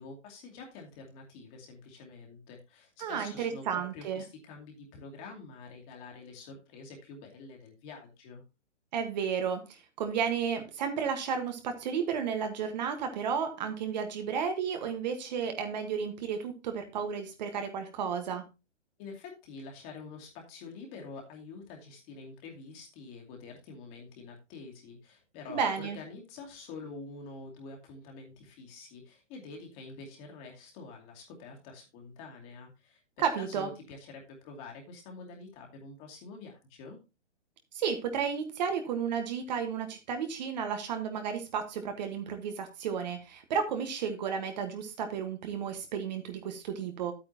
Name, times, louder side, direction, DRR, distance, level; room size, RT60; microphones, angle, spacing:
voice 1, 0.0-8.4 19.0-37.0, left 4 dB, 25° left, 1 dB, 2.5 m, -47 dB
voice 2, 3.0-4.2 8.9-18.4 25.5-26.0 33.2-33.7 37.7-47.1, right 7 dB, 35° right, 6 dB, 1.4 m, -32 dB
10.0 x 8.8 x 2.8 m, 0.26 s
hypercardioid pair, 145°, 36 cm